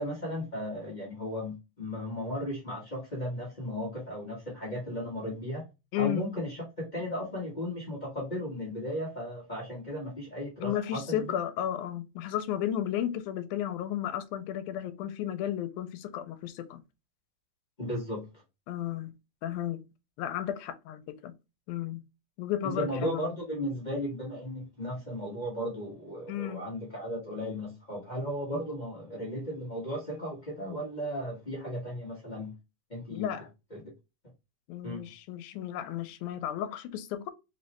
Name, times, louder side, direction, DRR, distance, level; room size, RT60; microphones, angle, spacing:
voice 1, 0.0-5.6 5.9-11.3 17.8-18.3 22.6-32.5 32.9-33.3 33.7-33.8 34.8-35.0, equal, 65° left, 0.4 m, -35 dB
voice 2, 5.9-6.3 10.6-16.8 18.7-19.1 19.4-19.8 20.2-21.3 21.7-22.0 22.4-23.2 26.3-26.7 33.1-33.5 34.7-37.3, left 11 dB, 85° left, 2.0 m, -33 dB
4.6 x 3.2 x 2.9 m
omnidirectional pair, 3.4 m